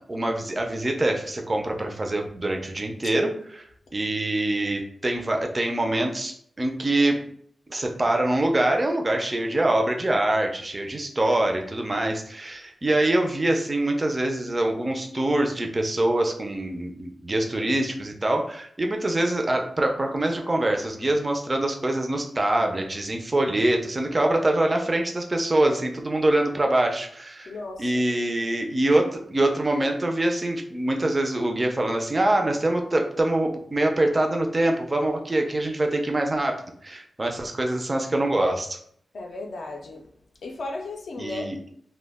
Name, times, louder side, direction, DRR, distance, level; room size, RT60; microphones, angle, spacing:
voice 1, 0.0-3.6 3.9-7.2 7.7-27.5 27.8-38.8 41.2-41.6, right 1 dB, 25° right, 3 dB, 0.3 m, -24 dB
voice 2, 27.5-27.9 39.1-40.0 40.4-41.5, left 2 dB, 70° left, 1 dB, 0.3 m, -35 dB
2.1 x 2.1 x 3.3 m, 0.64 s
wide cardioid pair, 150°, 0 cm